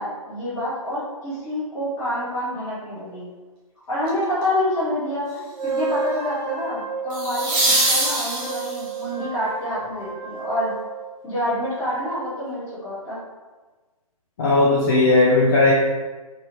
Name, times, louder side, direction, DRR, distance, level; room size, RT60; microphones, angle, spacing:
voice 1, 0.0-3.3 3.9-10.7 11.2-13.2, left 1 dB, 15° left, -11 dB, 1.2 m, -27 dB
sound 1, 4.1-4.4 7.1-9.0 11.9-12.0, right 2 dB, 20° right, 0.5 m, -23 dB
Wind instrument woodwind instrument, 5.5-11.1, right 4 dB, 50° right, 0.9 m, -32 dB
voice 2, 14.4-15.7, left 2 dB, 35° left, -7 dB, 0.6 m, -16 dB
2.9 x 2.7 x 2.7 m, 1.3 s
figure-of-eight pair, 135°, 19 cm